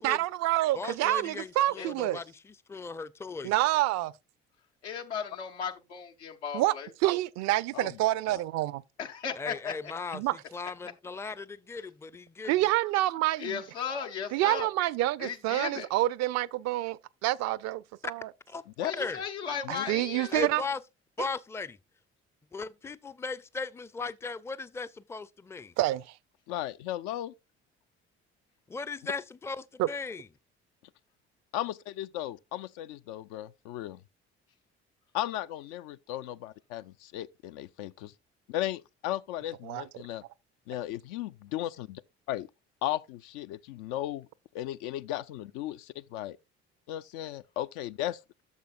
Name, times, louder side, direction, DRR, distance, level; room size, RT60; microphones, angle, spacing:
voice 1, 0.0-2.2 3.4-4.1 6.5-6.7 7.0-8.8 10.1-10.4 12.5-13.6 14.3-18.3 19.7-20.6 25.8-26.0 29.8-29.9 39.6-39.8, right 16 dB, 55° right, 0.4 m, -27 dB
voice 2, 0.7-3.5 9.4-10.3 10.5-12.5 18.0-18.1 18.5-18.6 19.0-19.2 20.3-20.8 21.2-21.8 22.5-25.7 28.7-30.3, left 4 dB, 10° left, 0.4 m, -37 dB
voice 3, 4.8-6.9 9.0-9.7 13.4-14.7 15.2-15.9 18.8-20.3, left 7 dB, 80° left, 1.0 m, -36 dB
voice 4, 26.5-27.3 31.5-34.0 35.1-38.1 38.5-40.2 40.7-42.0 42.3-42.5 42.8-44.3 44.5-46.4 46.9-48.2, left 13 dB, 65° left, 0.5 m, -35 dB
11.5 x 6.8 x 2.4 m
figure-of-eight pair, 50°, 33 cm